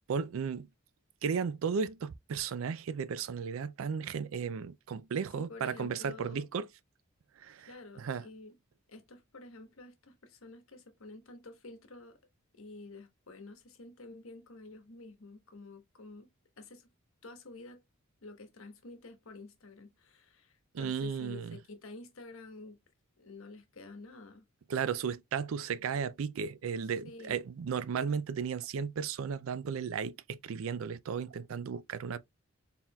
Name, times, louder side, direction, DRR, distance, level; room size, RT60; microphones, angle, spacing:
voice 1, 0.1-0.7 1.2-6.7 7.4-7.7 8.0-8.2 20.7-21.6 24.7-32.2, right 6 dB, 70° right, 0.4 m, -34 dB
voice 2, 5.4-6.4 7.7-8.6 8.9-12.2 12.5-16.3 16.6-16.9 17.2-17.8 18.2-22.8 23.2-24.5 27.0-27.4, left 3 dB, 75° left, 1.1 m, -50 dB
4.4 x 3.6 x 2.2 m
head